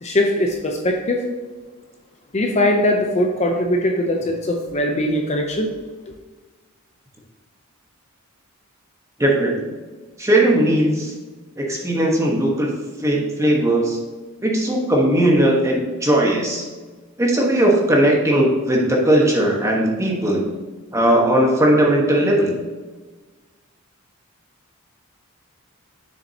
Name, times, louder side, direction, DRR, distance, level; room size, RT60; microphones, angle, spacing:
voice 1, 0.0-1.2 2.3-5.7, left 1 dB, 30° left, 2 dB, 0.6 m, -20 dB
voice 2, 9.2-9.5 10.2-11.1 11.6-12.7 13.0-14.0 14.4-16.7 17.2-20.4 20.9-22.5, right 1 dB, 15° right, -1 dB, 1.2 m, -18 dB
7.3 x 6.9 x 2.8 m, 1.3 s
head